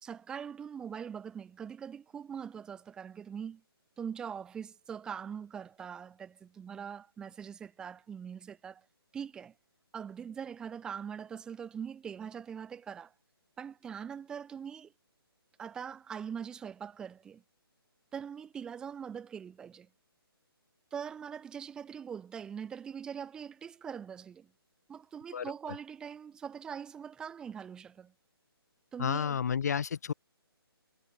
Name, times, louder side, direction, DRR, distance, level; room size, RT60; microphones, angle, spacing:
voice 1, 0.0-3.6 4.0-8.8 9.1-9.5 9.9-13.1 13.6-14.9 15.6-17.4 18.1-19.9 20.9-24.5 24.9-28.1 28.9-29.4, right 7 dB, 5° right, 1.4 m, -42 dB
voice 2, 29.0-30.1, left 7 dB, 40° left, 0.9 m, -31 dB
hypercardioid pair, 170°, 13 cm